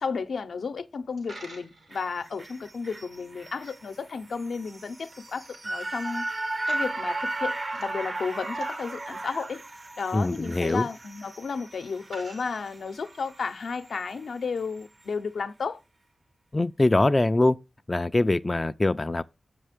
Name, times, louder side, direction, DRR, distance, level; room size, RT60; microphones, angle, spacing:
voice 1, 0.0-6.3 6.7-9.6 10.0-15.8, left 5 dB, 75° left, 0.6 m, -33 dB
Coin (dropping), 1.0-13.3, right 1 dB, 90° right, 2.9 m, -53 dB
sound 1, 1.9-14.2 14.6-14.7, right 2 dB, 45° right, 0.7 m, -36 dB
voice 2, 10.1-10.9 16.5-17.6 17.9-19.2, left 2 dB, 30° left, 0.4 m, -23 dB
7.4 x 5.5 x 5.0 m
cardioid pair, 50°, 0 cm